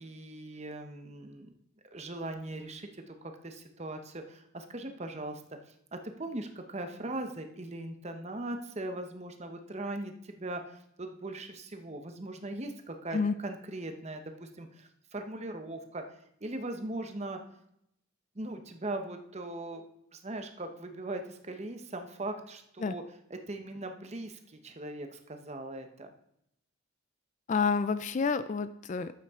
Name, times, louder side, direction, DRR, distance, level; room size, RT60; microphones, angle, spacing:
voice 1, 0.0-1.5 1.9-5.4 5.9-16.0 16.4-17.4 18.3-19.8 20.1-23.0 23.3-26.1, right 2 dB, 30° right, 6 dB, 0.9 m, -40 dB
voice 2, 27.5-29.1, left 5 dB, 35° left, 13 dB, 0.3 m, -29 dB
12.0 x 8.3 x 3.7 m, 0.77 s
head